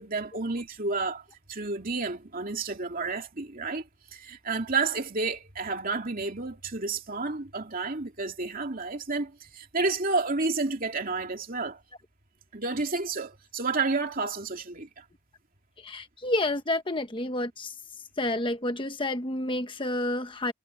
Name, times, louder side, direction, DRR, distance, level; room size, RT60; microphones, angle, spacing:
voice 1, 0.0-11.8 12.5-15.0, right 3 dB, 45° right, 2.7 m, -31 dB
voice 2, 15.8-17.7 18.2-20.5, left 1 dB, 25° left, 1.1 m, -29 dB
head